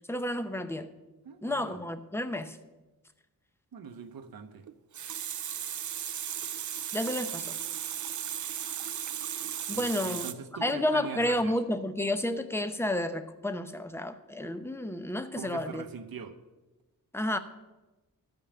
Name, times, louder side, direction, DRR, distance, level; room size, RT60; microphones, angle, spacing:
voice 1, 0.1-0.9 1.4-2.6 6.9-7.6 9.7-10.3 10.6-15.9 17.1-17.4, left 1 dB, 5° left, 0.7 m, -31 dB
voice 2, 1.2-1.8 3.7-4.6 9.7-11.5 15.3-16.4, right 5 dB, 70° right, 1.0 m, -42 dB
Water tap faucet, 4.7-10.3, right 9 dB, 55° right, 0.5 m, -36 dB
13.0 x 5.3 x 7.3 m
wide cardioid pair, 95°, 36 cm